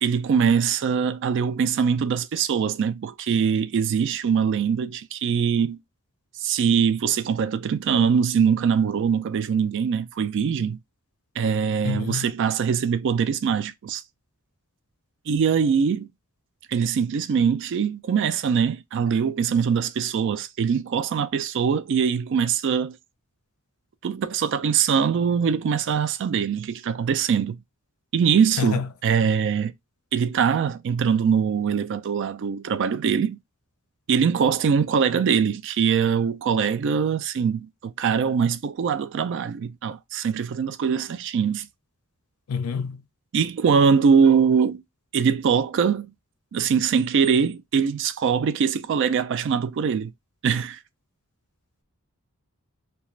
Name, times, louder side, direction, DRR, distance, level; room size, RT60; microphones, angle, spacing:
voice 1, 0.0-5.8 6.4-10.8 11.4-14.0 15.3-16.1 16.7-23.0 24.0-27.6 28.1-29.7 30.1-33.4 34.1-41.7 43.3-44.8 45.1-46.1 46.5-50.1 50.4-50.8, right 6 dB, 55° right, 0.3 m, -22 dB
voice 2, 11.8-12.3 28.6-28.9 42.5-43.0, left 6 dB, 80° left, 0.4 m, -27 dB
2.4 x 2.2 x 3.0 m
head